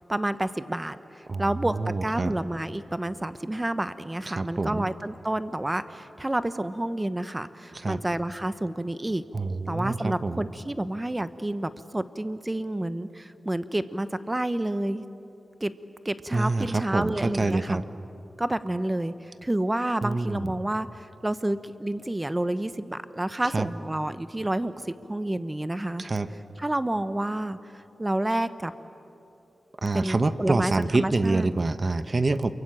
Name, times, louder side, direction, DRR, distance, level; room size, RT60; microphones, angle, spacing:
voice 1, 0.0-9.2 9.7-15.0 15.6-15.7 16.0-17.8 18.4-26.0 26.6-27.6 28.0-28.7 29.9-31.5, right 1 dB, 20° right, 12 dB, 1.1 m, -29 dB
voice 2, 1.7-2.3 4.3-4.9 7.8-8.0 9.3-10.4 16.3-17.8 20.0-20.5 23.5-23.7 26.0-26.3 29.8-32.5, right 3 dB, 40° right, 11 dB, 1.1 m, -26 dB
28.5 x 23.5 x 8.8 m, 2.9 s
wide cardioid pair, 75°, 0 cm